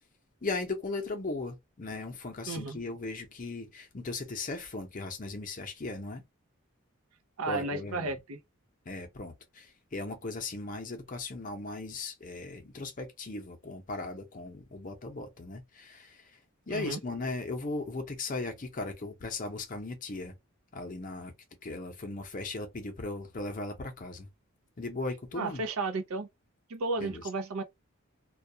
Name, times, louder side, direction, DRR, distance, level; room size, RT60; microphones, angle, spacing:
voice 1, 0.4-6.2 7.5-8.2 8.9-16.4 16.7-20.3 20.7-21.3 21.6-24.3 24.8-25.6 27.0-27.2, left 3 dB, 35° left, 0.6 m, -37 dB
voice 2, 2.5-2.8 7.4-8.4 16.7-17.0 25.4-26.3 26.7-27.6, right 3 dB, 75° right, 0.5 m, -33 dB
2.2 x 2.2 x 2.6 m
head